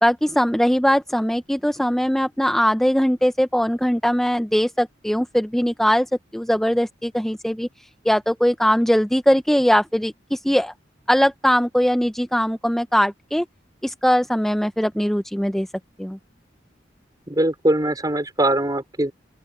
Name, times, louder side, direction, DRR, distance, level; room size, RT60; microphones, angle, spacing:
voice 1, 0.0-10.7 11.1-13.4 13.8-15.7 16.0-16.2, equal, ahead, 0.5 m, -20 dB
voice 2, 17.3-19.1, right 1 dB, 20° right, 4.5 m, -21 dB
open air
head